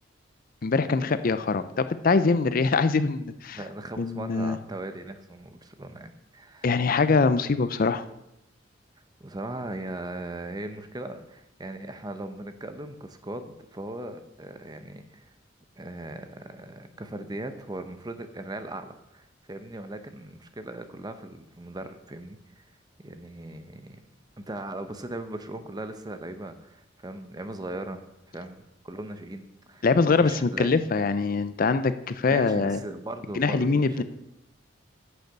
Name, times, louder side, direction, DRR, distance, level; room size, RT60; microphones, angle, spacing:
voice 1, 0.6-3.6 4.0-4.6 6.6-8.0 29.8-32.8 33.3-34.0, left 4 dB, 50° left, 12 dB, 0.5 m, -23 dB
voice 2, 3.5-6.8 9.2-15.3 15.8-22.6 23.0-24.0 24.4-28.0 28.3-30.9 32.3-34.0, right 1 dB, 20° right, 9 dB, 0.8 m, -38 dB
9.9 x 6.6 x 6.8 m, 0.87 s
head